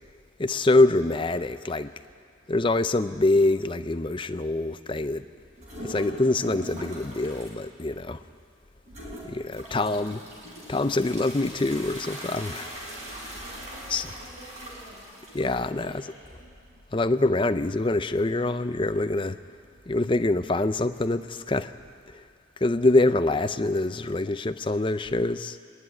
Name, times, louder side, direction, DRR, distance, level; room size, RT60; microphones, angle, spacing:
voice 1, 0.4-1.9 2.5-5.3 5.8-8.2 9.2-10.2 10.7-12.8 13.9-14.0 15.3-15.9 16.9-19.4 19.9-21.7 22.1-22.2 22.6-25.6, left 2 dB, 25° left, 11 dB, 0.5 m, -25 dB
voice 2, 2.4-2.8 13.4-16.4, equal, 75° right, -7 dB, 5.1 m, -52 dB
sound 1, 5.6-7.5 7.9-8.4 8.9-21.5, right 1 dB, 35° right, 4.6 m, -42 dB
25.0 x 11.0 x 9.8 m, 2.2 s
head